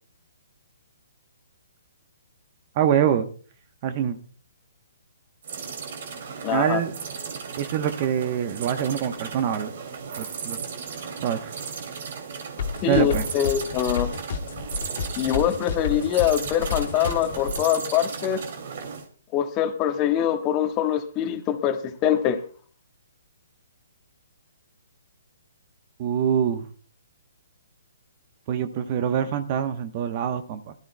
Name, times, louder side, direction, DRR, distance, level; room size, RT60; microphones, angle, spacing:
voice 1, 2.7-3.3 3.8-4.2 6.5-6.9 7.6-9.7 10.2-10.6 11.2-11.5 12.9-13.2 26.0-26.6 28.5-30.7, right 9 dB, 40° right, 10 dB, 0.9 m, -25 dB
sound 1, 5.4-19.1, right 6 dB, 55° right, 2.4 m, -36 dB
voice 2, 6.4-6.8 12.8-14.1 15.2-18.4 19.3-22.4, left 10 dB, 25° left, 6 dB, 1.4 m, -23 dB
sound 2, 12.6-17.6, left 6 dB, 60° left, 2.1 m, -30 dB
22.0 x 13.0 x 2.2 m, 0.41 s
hypercardioid pair, 140°, 0 cm